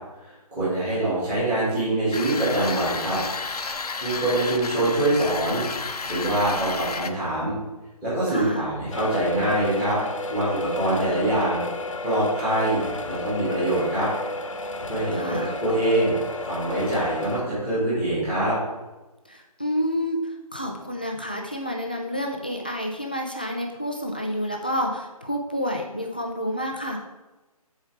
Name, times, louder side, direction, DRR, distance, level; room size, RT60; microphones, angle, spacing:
voice 1, 0.2-3.2 4.0-5.6 6.0-7.6 8.0-10.0 10.3-11.6 12.0-12.8 13.1-14.1 14.9-16.1 16.4-18.6, right 1 dB, 10° right, -11 dB, 2.0 m, -24 dB
sound 1, 2.1-7.1, left 4 dB, 85° left, 0.8 m, -32 dB
voice 2, 8.3-8.7 15.1-15.6 19.3-27.0, equal, 15° left, 1 dB, 0.4 m, -29 dB
sound 2, 8.9-17.4, left 2 dB, 55° left, 1.0 m, -32 dB
12.5 x 4.5 x 3.4 m, 1.1 s
figure-of-eight pair, 170°, 19 cm